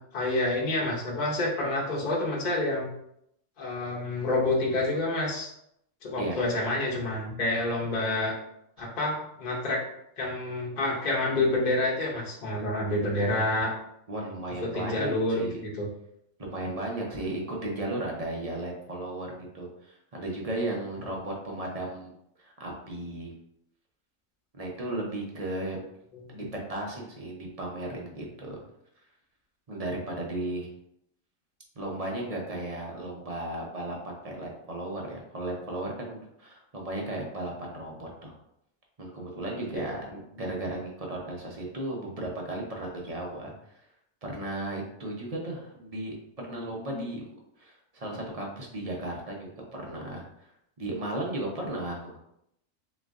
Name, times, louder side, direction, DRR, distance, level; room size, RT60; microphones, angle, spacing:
voice 1, 0.1-2.9 3.6-5.5 6.0-8.4 8.8-9.8 10.2-13.7 14.7-15.9 26.1-26.2 39.7-39.9 46.5-46.6 46.9-47.0, left 2 dB, 40° left, -4 dB, 1.0 m, -28 dB
voice 2, 14.1-15.6 16.4-22.1 22.4-23.3 24.5-25.8 26.3-28.6 29.7-30.7 31.8-38.3 39.0-43.8 44.2-47.3 47.6-50.5 50.8-52.2, right 1 dB, 35° right, -1 dB, 0.8 m, -35 dB
3.8 x 3.0 x 3.6 m, 0.77 s
omnidirectional pair, 1.4 m